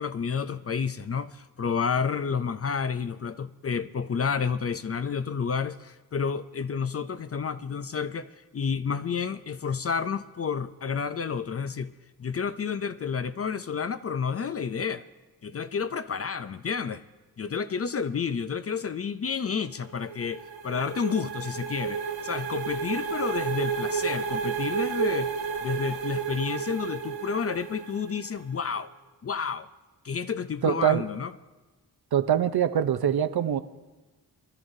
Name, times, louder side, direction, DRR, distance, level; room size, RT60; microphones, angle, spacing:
voice 1, 0.0-11.9 12.2-15.0 15.4-17.0 17.4-25.3 25.6-28.9 29.2-29.7 30.0-31.3, left 6 dB, 35° left, 0.4 m, -30 dB
sound 1, 19.8-28.4, right 7 dB, 85° right, 2.6 m, -32 dB
voice 2, 30.6-31.1 32.1-33.6, right 9 dB, 60° right, 0.7 m, -23 dB
23.5 x 12.0 x 2.7 m
cardioid pair, 80°, 42 cm